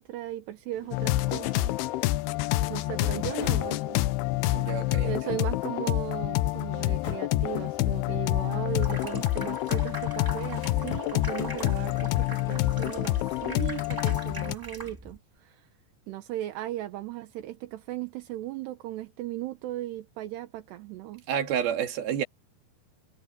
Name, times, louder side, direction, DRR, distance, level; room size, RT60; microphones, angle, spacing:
voice 1, 0.0-2.2 2.7-4.0 5.0-15.7 16.1-21.2, right 14 dB, 80° right, 3.2 m, -37 dB
sound 1, 0.7-13.5, left 7 dB, 60° left, 4.7 m, -48 dB
sound 2, 0.9-14.6, left 17 dB, 80° left, 2.5 m, -27 dB
voice 2, 4.5-5.4 21.3-22.2, right 9 dB, 65° right, 3.9 m, -30 dB
Water tap faucet / Sink (filling or washing), 8.7-15.2, right 1 dB, 10° right, 1.0 m, -42 dB
omnidirectional pair, 4.9 m